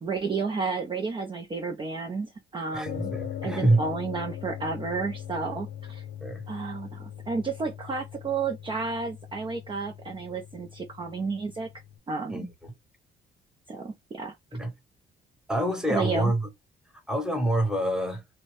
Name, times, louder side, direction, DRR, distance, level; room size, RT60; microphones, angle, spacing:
voice 1, 0.0-3.1 3.4-6.0 6.5-11.7 12.1-12.5 13.7-14.3 15.9-16.3, right 4 dB, 25° right, 0.5 m, -31 dB
voice 2, 2.7-3.8 6.2-6.4 12.3-12.7 14.5-14.7 15.5-16.5 17.1-18.2, right 1 dB, 5° right, 1.0 m, -26 dB
sound 1, 2.9-12.0, left 10 dB, 70° left, 0.6 m, -40 dB
2.8 x 2.1 x 3.0 m
cardioid pair, 90°, 20 cm